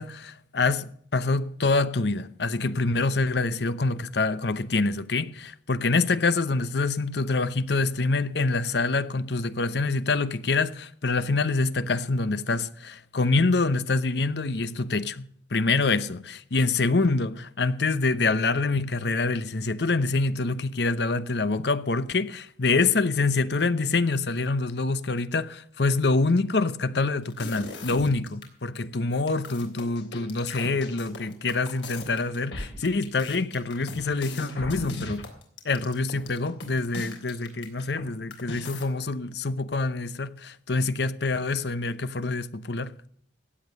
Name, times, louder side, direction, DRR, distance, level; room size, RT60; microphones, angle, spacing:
voice 1, 0.0-35.2 35.6-42.9, left 3 dB, 65° left, 0.8 m, -26 dB
sound 1, 27.3-28.5 28.8-28.9 29.1-38.0 38.3-38.9, left 2 dB, 85° left, 3.5 m, -38 dB
16.0 x 9.2 x 6.4 m
head